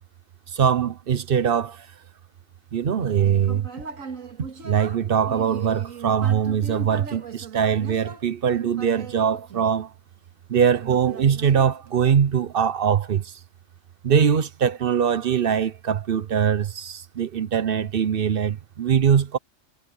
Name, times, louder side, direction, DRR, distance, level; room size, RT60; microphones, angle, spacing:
voice 1, 0.5-1.9 2.7-3.7 4.6-9.9 10.5-13.3 14.0-19.4, right 8 dB, 50° right, 1.0 m, -22 dB
Human voice, 2.8-10.2 10.8-12.2, right 5 dB, 75° right, 2.3 m, -39 dB
omnidirectional pair, 1.4 m